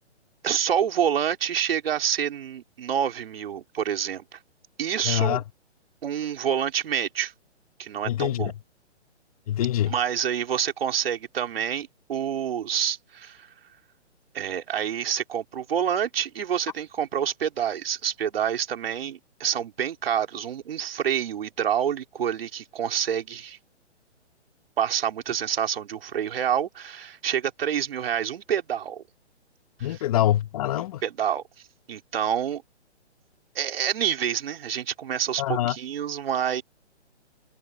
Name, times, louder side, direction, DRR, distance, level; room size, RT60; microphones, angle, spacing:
voice 1, 0.4-4.4 4.8-5.4 6.0-7.3 7.8-8.5 9.9-13.5 14.3-23.6 24.8-29.0 29.8-30.0 30.8-31.4 31.9-32.6 33.5-36.6, right 9 dB, 55° right, 4.2 m, -27 dB
voice 2, 5.0-5.4 8.0-8.5 9.5-9.9 29.8-31.0 35.4-35.8, left 12 dB, 30° left, 1.5 m, -24 dB
hypercardioid pair, 155°, 36 cm